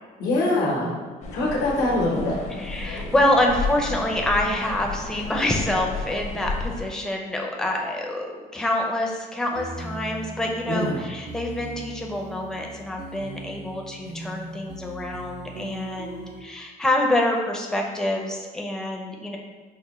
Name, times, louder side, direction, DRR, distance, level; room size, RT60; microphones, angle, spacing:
voice 1, 0.2-0.9 1.3-2.4 10.6-11.0, left 2 dB, 80° left, -3 dB, 0.9 m, -23 dB
sound 1, 1.2-6.8, left 4 dB, 40° left, 0.6 m, -33 dB
voice 2, 2.6-19.4, left 1 dB, 5° left, 0 dB, 0.4 m, -26 dB
sound 2, 9.5-16.4, right 1 dB, 85° right, 0.5 m, -39 dB
4.6 x 2.1 x 3.0 m, 1.4 s
cardioid pair, 110°, 17 cm